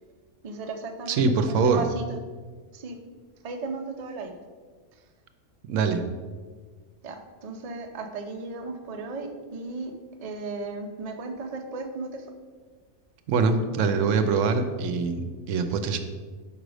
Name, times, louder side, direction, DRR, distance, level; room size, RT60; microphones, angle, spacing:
voice 1, 0.4-2.2 2.7-3.0 3.4-4.3 4.9-5.0 7.0-9.9 10.2-12.3, right 3 dB, 40° right, 4 dB, 0.5 m, -36 dB
voice 2, 1.1-1.8 5.7-6.0 13.3-16.0, right 4 dB, 75° right, 8 dB, 1.0 m, -23 dB
5.4 x 4.8 x 5.0 m, 1.5 s
omnidirectional pair, 1.3 m